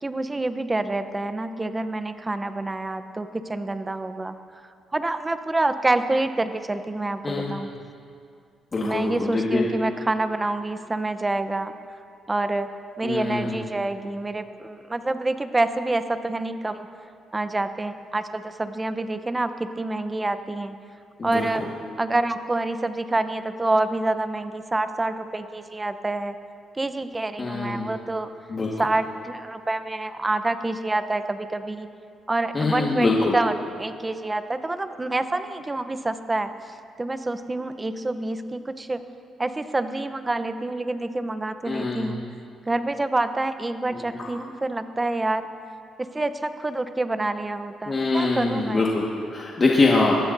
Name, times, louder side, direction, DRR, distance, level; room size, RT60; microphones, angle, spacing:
voice 1, 0.0-4.3 4.9-7.7 8.8-11.7 12.3-12.7 13.0-16.9 17.3-20.7 21.2-21.7 22.0-26.4 26.8-28.3 28.8-31.9 32.3-36.5 37.0-39.0 39.4-42.2 42.7-45.5 46.1-48.9, right 2 dB, 20° right, 10 dB, 0.7 m, -27 dB
voice 2, 7.2-7.5 8.7-9.6 13.0-13.6 21.2-21.5 27.4-27.9 28.5-28.7 32.5-33.3 41.7-42.2 47.9-50.1, left 3 dB, 35° left, -3 dB, 1.6 m, -23 dB
21.5 x 15.5 x 2.7 m, 2.3 s
cardioid pair, 90°, 0 cm